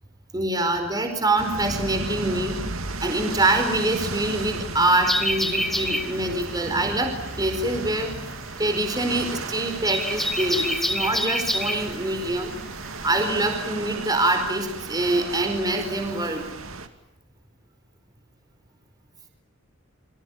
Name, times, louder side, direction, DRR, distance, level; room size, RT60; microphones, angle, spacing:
voice 1, 0.3-2.6 3.0-12.5 13.0-16.4, right 2 dB, 20° right, 6 dB, 4.7 m, -25 dB
sound 1, 1.4-16.9, right 3 dB, 75° right, 2.6 m, -35 dB
sound 2, 5.0-13.3, equal, ahead, 2.5 m, -28 dB
29.0 x 25.5 x 7.2 m, 0.93 s
head